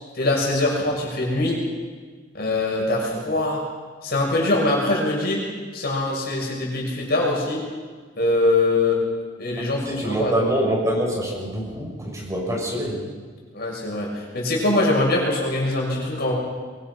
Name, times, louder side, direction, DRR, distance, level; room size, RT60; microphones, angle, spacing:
voice 1, 0.1-1.6 2.3-3.6 4.0-5.4 5.7-7.6 8.2-9.0 9.4-10.4 13.5-16.3, left 2 dB, 55° left, -2 dB, 6.7 m, -23 dB
voice 2, 9.9-13.0, right 1 dB, 20° right, -2 dB, 6.5 m, -25 dB
25.0 x 23.0 x 5.6 m, 1.5 s
head